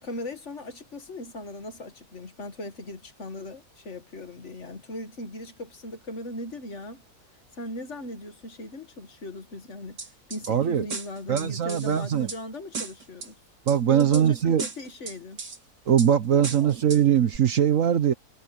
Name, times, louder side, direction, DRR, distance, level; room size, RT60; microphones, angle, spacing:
voice 1, 0.0-7.0 7.5-13.3 13.9-15.4 16.4-17.0, left 1 dB, 45° left, 1.9 m, -38 dB
sound 1, 10.0-10.5 10.9-12.4 12.7-13.3 13.7-14.2 14.6-15.6 16.0-16.1 16.4-17.0 17.3-17.4, right 4 dB, 90° right, 3.5 m, -36 dB
voice 2, 10.5-10.9 11.3-12.3 13.7-14.6 15.9-18.1, right 9 dB, 55° right, 1.3 m, -21 dB
omnidirectional pair, 1.7 m